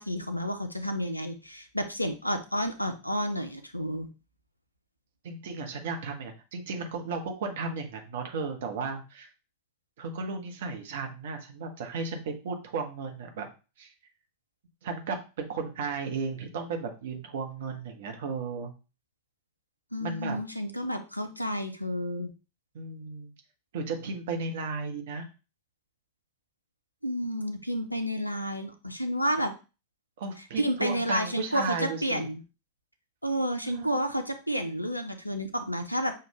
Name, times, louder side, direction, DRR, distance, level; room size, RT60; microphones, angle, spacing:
voice 1, 0.0-4.1 19.9-22.3 27.0-29.5 30.6-32.4 33.2-36.1, equal, 90° left, 8 dB, 0.5 m, -30 dB
voice 2, 5.2-9.3 10.0-13.5 13.8-13.9 14.8-18.7 20.0-20.4 22.7-23.3 23.7-25.3 30.2-32.3 33.6-34.0, right 4 dB, 55° right, 4 dB, 0.9 m, -34 dB
6.6 x 2.4 x 3.1 m, 0.31 s
figure-of-eight pair, 90°, 0 cm